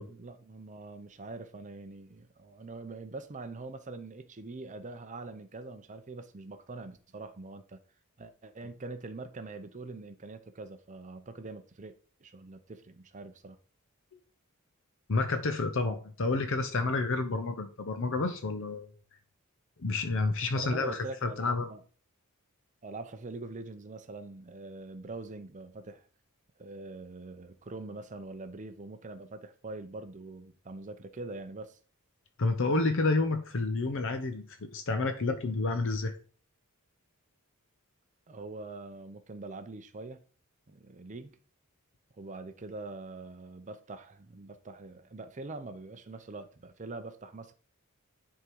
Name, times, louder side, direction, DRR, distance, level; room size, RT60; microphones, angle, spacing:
voice 1, 0.1-7.8 8.2-11.9 12.2-13.6 20.5-21.8 22.8-26.1 26.6-31.8 38.3-40.2 40.7-41.4 42.1-47.5, right 3 dB, 35° right, 0.6 m, -43 dB
voice 2, 15.1-18.9 19.8-21.7 32.4-36.2, left 3 dB, 60° left, 0.7 m, -29 dB
9.8 x 3.7 x 4.6 m
head